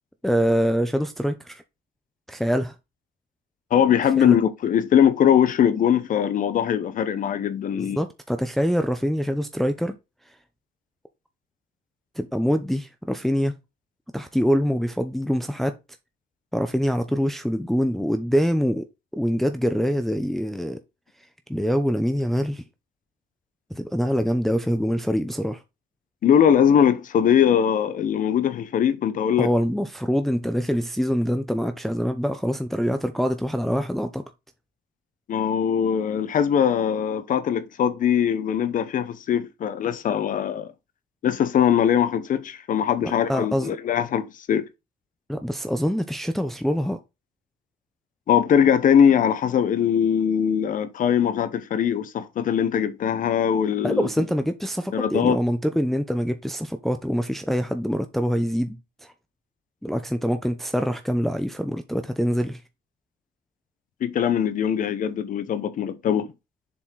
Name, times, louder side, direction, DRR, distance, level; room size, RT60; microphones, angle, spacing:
voice 1, 0.2-1.6 2.3-2.7 4.2-4.4 7.7-10.0 12.2-13.5 14.1-15.7 16.5-18.9 19.1-20.8 21.5-22.6 23.7-25.6 29.4-34.2 43.0-43.7 45.3-47.0 53.8-58.8 59.0-59.1 59.8-62.6, equal, ahead, 0.7 m, -24 dB
voice 2, 3.7-8.0 26.2-29.5 35.3-40.7 41.2-44.7 48.3-54.1 54.9-55.4 64.0-66.3, left 8 dB, 50° left, 1.1 m, -21 dB
7.2 x 4.4 x 4.7 m
cardioid pair, 110°, 17 cm